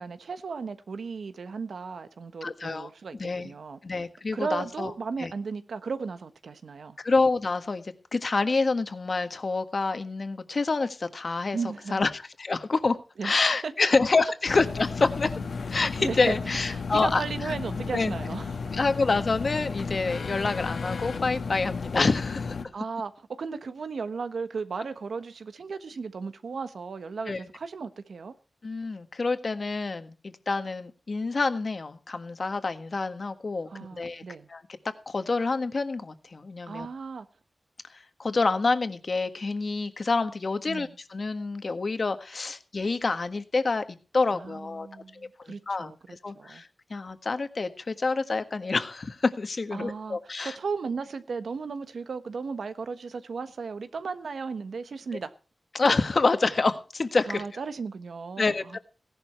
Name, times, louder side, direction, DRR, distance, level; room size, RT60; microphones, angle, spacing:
voice 1, 0.0-3.8 4.3-7.0 11.5-12.0 13.2-13.7 16.0-16.4 16.7-18.6 22.7-28.3 33.7-34.5 36.7-37.3 40.6-41.0 44.3-46.6 49.7-55.3 57.3-58.8, right 5 dB, 85° right, 1.2 m, -35 dB
voice 2, 2.4-2.9 3.2-3.5 3.8-4.9 5.2-5.3 7.0-11.6 11.9-13.0 13.2-15.3 15.7-17.5 17.9-18.1 18.7-22.6 27.3-27.4 28.6-33.7 34.0-34.2 34.5-34.6 35.1-36.9 38.2-43.8 44.1-44.9 45.4-50.5 55.7-57.4 58.4-58.8, left 3 dB, 50° left, 1.6 m, -27 dB
sound 1, 14.5-22.7, left 4 dB, 75° left, 1.6 m, -33 dB
17.0 x 11.5 x 4.4 m
wide cardioid pair, 130°, 0 cm